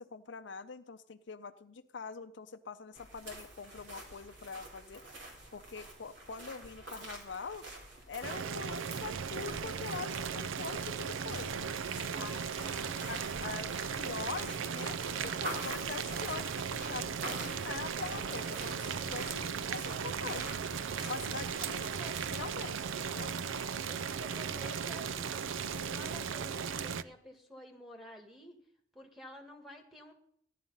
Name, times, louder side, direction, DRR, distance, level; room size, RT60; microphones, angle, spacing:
voice 1, 0.0-5.0 5.5-7.7 8.1-11.7 12.2-12.3 13.1-20.5 21.0-21.7 22.3-23.3, left 5 dB, 65° left, 9 dB, 0.6 m, -43 dB
sound 1, 2.9-22.6, right 1 dB, 70° right, 3.4 m, -48 dB
Boiling, 8.2-27.0, right 6 dB, 85° right, 0.5 m, -37 dB
voice 2, 12.1-13.1 20.2-20.5 21.7-22.2 23.2-28.6 28.9-30.1, left 1 dB, ahead, 2 dB, 1.8 m, -51 dB
15.0 x 11.0 x 5.6 m, 0.67 s
head